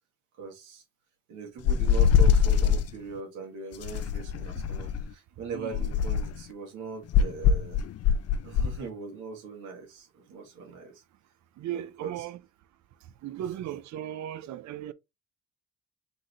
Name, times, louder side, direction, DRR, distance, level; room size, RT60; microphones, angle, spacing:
voice 1, 0.4-0.8 1.3-7.8 8.4-10.9 11.6-12.3, right 4 dB, 90° right, 2.0 m, -40 dB
sound 1, 1.7-2.9 3.8-5.1 5.7-6.4 7.1-8.8, left 7 dB, 55° left, 0.5 m, -23 dB
voice 2, 5.5-5.9 11.6-12.4 13.2-14.9, right 11 dB, 65° right, 0.6 m, -36 dB
3.9 x 3.7 x 3.2 m
cardioid pair, 90°, 30 cm